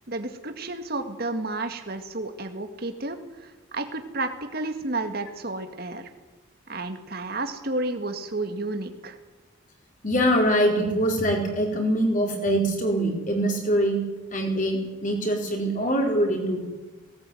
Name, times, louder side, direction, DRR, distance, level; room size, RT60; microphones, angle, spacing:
voice 1, 0.1-6.1 6.7-9.2, right 2 dB, 45° right, 6 dB, 2.0 m, -31 dB
voice 2, 10.0-14.0 14.3-16.6, equal, 40° left, 1 dB, 4.7 m, -23 dB
18.5 x 18.5 x 9.3 m, 1.2 s
head